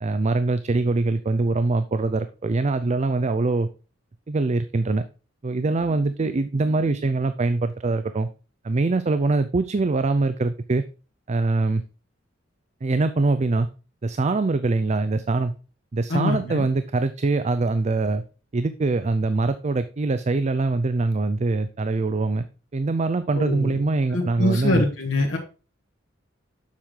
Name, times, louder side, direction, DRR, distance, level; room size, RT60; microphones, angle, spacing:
voice 1, 0.0-3.7 4.3-5.0 5.4-8.3 8.6-10.8 11.3-11.8 12.8-13.7 14.0-15.5 15.9-18.2 18.5-22.4 22.7-24.8, right 3 dB, 35° right, 11 dB, 0.4 m, -23 dB
voice 2, 16.1-16.7 23.4-23.8 24.1-25.4, left 1 dB, 80° left, -2 dB, 1.6 m, -24 dB
7.3 x 6.5 x 3.7 m, 0.34 s
head